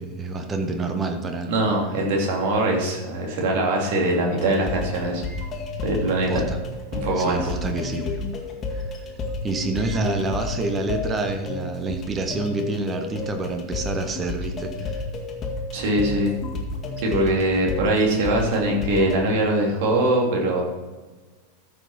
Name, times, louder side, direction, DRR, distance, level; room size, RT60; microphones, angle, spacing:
voice 1, 0.0-1.5 6.3-6.6 7.2-8.1 8.7-8.9 9.4-15.0, right 3 dB, 20° right, 5 dB, 1.4 m, -28 dB
voice 2, 1.5-5.2 5.8-6.4 6.9-7.5 15.7-16.3 17.0-20.6, right 1 dB, 50° right, -1 dB, 2.9 m, -22 dB
sound 1, 4.3-19.2, left 3 dB, 25° left, 1.9 m, -31 dB
14.5 x 6.3 x 4.4 m, 1.3 s
figure-of-eight pair, 90°, 0 cm